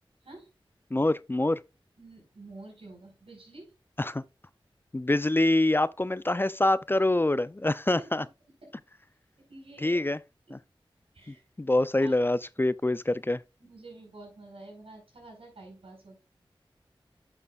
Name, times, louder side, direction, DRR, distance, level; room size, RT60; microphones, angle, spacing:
voice 1, 0.9-1.6 4.0-4.2 4.9-8.2 9.8-10.2 10.5-10.6 11.3-13.4, left 2 dB, 25° left, 0.4 m, -25 dB
voice 2, 2.0-3.7 9.4-10.0 11.1-12.2 13.6-16.2, right 2 dB, 85° right, 5.1 m, -49 dB
10.5 x 6.7 x 2.4 m
wide cardioid pair, 45°, 9 cm